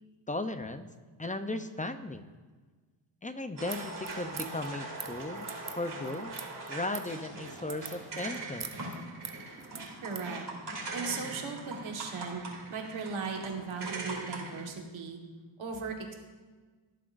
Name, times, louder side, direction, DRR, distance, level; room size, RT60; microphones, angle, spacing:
voice 1, 0.3-0.9 1.2-2.3 3.2-5.5 5.7-6.3 6.7-8.6, left 2 dB, 15° left, 9 dB, 0.7 m, -36 dB
sound 1, 3.6-10.3, right 6 dB, 35° right, 0.8 m, -44 dB
sound 2, 3.6-14.6, right 2 dB, 55° right, 3.0 m, -41 dB
voice 2, 10.0-10.4 10.9-12.4 12.7-15.2 15.6-16.1, right 5 dB, 80° right, 1 dB, 1.7 m, -37 dB
17.5 x 7.7 x 2.6 m, 1.4 s
cardioid pair, 70°, 47 cm